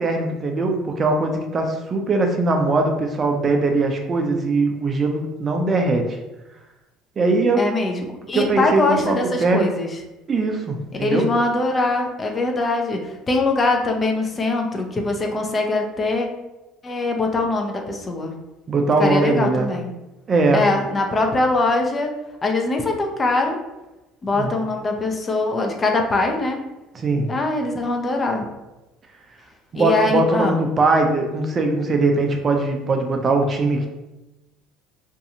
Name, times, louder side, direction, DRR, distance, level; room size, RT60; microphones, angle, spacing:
voice 1, 0.0-6.2 7.2-7.6 8.3-9.7 10.3-11.3 18.7-19.7 20.3-20.6 24.3-24.5 26.9-27.3 29.7-33.9, right 3 dB, 35° right, 3 dB, 0.5 m, -20 dB
voice 2, 7.6-9.9 11.0-16.3 16.8-18.3 19.0-19.9 20.5-22.1 22.4-23.6 24.2-26.6 27.3-28.4 29.7-30.6, left 2 dB, 30° left, 3 dB, 0.5 m, -22 dB
2.6 x 2.3 x 2.7 m, 1.0 s
hypercardioid pair, 70°, 0 cm